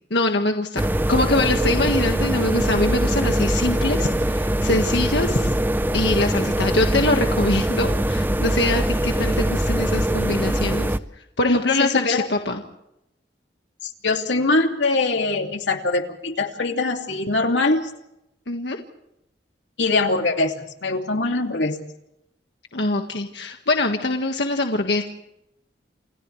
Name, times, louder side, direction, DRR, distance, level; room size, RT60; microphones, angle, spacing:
voice 1, 0.1-0.8 1.1-5.5 5.9-10.9 11.4-12.6 18.5-18.8 22.7-25.0, left 2 dB, 70° left, 3 dB, 1.7 m, -23 dB
sound 1, 0.8-11.0, right 1 dB, 10° right, 0.7 m, -22 dB
voice 2, 11.5-12.2 13.8-17.9 19.8-21.8, left 3 dB, 90° left, 3 dB, 2.6 m, -23 dB
29.0 x 28.5 x 3.3 m, 0.83 s
head